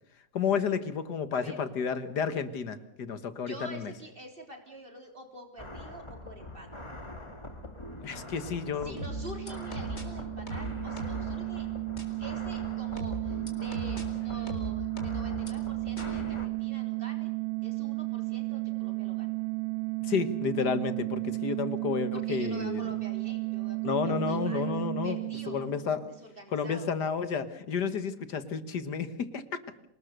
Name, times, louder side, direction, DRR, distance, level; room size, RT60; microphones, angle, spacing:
voice 1, 0.3-3.9 8.0-9.0 20.0-22.8 23.8-25.2 25.5-26.1 26.5-29.4, left 6 dB, 65° left, 12 dB, 2.0 m, -31 dB
voice 2, 3.4-6.7 8.8-11.7 12.2-17.3 17.6-19.4 22.1-24.7 25.0-25.6 26.1-26.9, right 1 dB, 30° right, 3 dB, 3.8 m, -47 dB
sound 1, 5.6-16.5, left 1 dB, 15° left, 2.2 m, -43 dB
sound 2, 8.8-26.3, right 28 dB, 85° right, 1.8 m, -34 dB
sound 3, 9.0-10.0 10.5-11.3 12.0-12.1 13.0-14.0 14.5-15.5 16.0-16.1, right 1 dB, 35° left, 4.2 m, -37 dB
27.0 x 19.5 x 6.6 m, 0.76 s
omnidirectional pair, 2.0 m